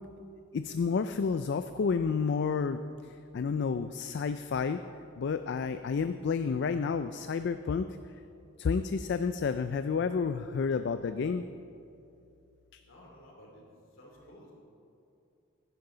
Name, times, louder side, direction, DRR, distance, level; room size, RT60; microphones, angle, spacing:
voice 1, 0.5-2.8 3.3-4.8 5.2-7.9 8.6-11.4 12.7-12.8, left 5 dB, 55° left, 10 dB, 0.3 m, -30 dB
voice 2, 12.8-13.7 13.9-14.5, equal, 70° left, -2 dB, 3.1 m, -53 dB
16.0 x 10.5 x 3.9 m, 2.6 s
head